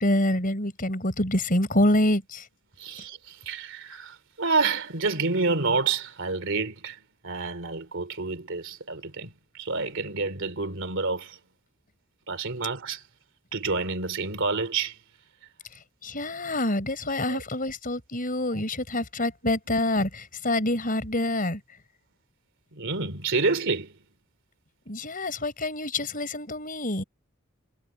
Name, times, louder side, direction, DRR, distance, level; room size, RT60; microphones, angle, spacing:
voice 1, 0.0-2.5 15.7-21.6 24.9-27.0, left 1 dB, 40° left, 5.0 m, -26 dB
voice 2, 2.8-7.0 7.2-11.4 12.3-13.0 13.5-14.9 17.3-17.4 18.5-18.6 22.7-23.9, right 4 dB, 60° right, 3.1 m, -28 dB
head